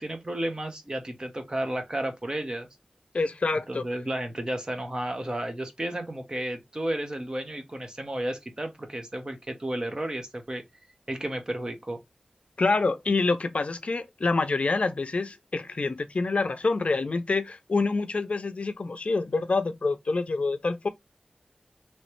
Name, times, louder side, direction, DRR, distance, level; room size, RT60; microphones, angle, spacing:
voice 1, 0.0-2.7 3.7-10.6 11.1-12.0, right 1 dB, 35° right, 1.1 m, -32 dB
voice 2, 3.1-3.9 12.6-20.9, left 3 dB, 65° left, 0.4 m, -26 dB
3.2 x 3.1 x 2.9 m
wide cardioid pair, 60°, 2 cm